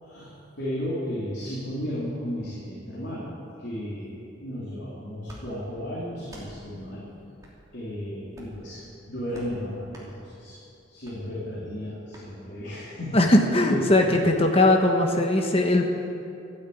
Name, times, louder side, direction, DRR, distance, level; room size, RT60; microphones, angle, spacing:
voice 1, 0.0-3.3 3.6-7.1 7.7-8.8 9.1-10.6 10.9-13.3 13.6-14.0, equal, 60° left, -8 dB, 3.6 m, -34 dB
sound 1, 5.2-5.4 6.2-6.5 7.4-7.6 8.3-8.6 9.3-9.5 9.9-10.1 11.0-11.2 12.1-12.3, equal, 20° right, 2.9 m, -46 dB
voice 2, 13.1-15.8, left 1 dB, 30° left, 2 dB, 1.3 m, -20 dB
12.5 x 12.0 x 8.6 m, 2.6 s
head